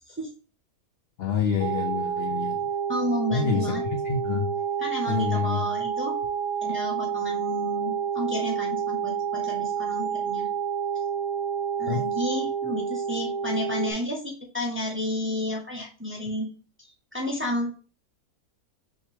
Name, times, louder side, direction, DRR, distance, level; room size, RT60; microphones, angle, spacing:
voice 1, 1.2-2.6 3.3-4.5 5.1-5.6 11.9-12.0, left 6 dB, 75° left, 5 dB, 0.5 m, -27 dB
sound 1, 1.6-13.9, right 7 dB, 85° right, 1.2 m, -29 dB
voice 2, 2.9-3.8 4.8-6.2 6.6-10.5 11.8-16.5 16.8-17.7, left 1 dB, 10° right, -1 dB, 0.6 m, -31 dB
5.5 x 2.9 x 3.2 m, 0.35 s
omnidirectional pair, 1.6 m